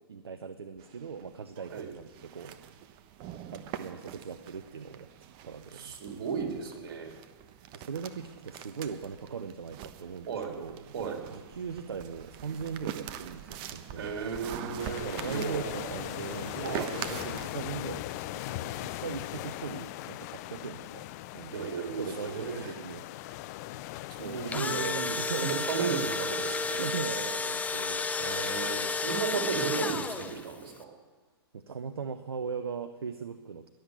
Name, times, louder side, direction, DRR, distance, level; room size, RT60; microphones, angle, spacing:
voice 1, 0.1-2.6 3.5-5.1 5.4-6.0 7.7-10.9 11.3-14.1 15.0-21.1 21.3-23.1 24.2-25.5 25.8-26.0 26.8-28.1 31.5-33.7, right 6 dB, 75° right, 10 dB, 0.8 m, -39 dB
sound 1, 0.8-17.5, right 10 dB, 35° right, 1.1 m, -44 dB
voice 2, 5.7-7.1 10.3-10.6 10.9-11.2 14.0-15.7 16.6-16.9 21.5-22.7 24.2-26.9 28.2-30.9, right 6 dB, 55° right, 2 dB, 3.8 m, -35 dB
sound 2, 14.8-24.6, left 16 dB, 40° left, 0.6 m, -39 dB
Engine / Drill, 24.3-30.5, left 4 dB, 10° left, 0.8 m, -32 dB
21.5 x 7.9 x 6.9 m, 1.4 s
figure-of-eight pair, 110°, 13 cm